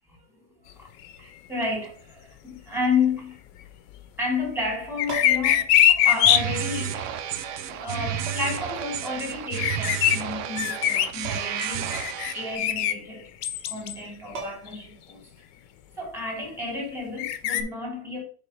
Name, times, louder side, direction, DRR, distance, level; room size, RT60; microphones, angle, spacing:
voice 1, 0.1-0.4 0.8-0.9 1.2-3.4 4.2-7.1 7.7-13.3 13.7-15.2 16.0-18.2, left 3 dB, ahead, 2.7 m, -31 dB
sound 1, 5.0-6.4 9.5-10.2 10.6-11.1 11.6-12.9 13.4-14.0 14.7-14.8 17.2-17.6, left 11 dB, 85° left, 1.3 m, -21 dB
sound 2, 5.0-5.6 7.0-7.1 8.3-8.7 11.2-11.7 12.0-12.1 13.9-14.0 14.3-14.9 16.9-17.1, right 2 dB, 65° right, 1.9 m, -38 dB
sound 3, 6.1-12.6, right 10 dB, 85° right, 0.6 m, -32 dB
6.7 x 3.6 x 4.4 m
omnidirectional pair, 1.9 m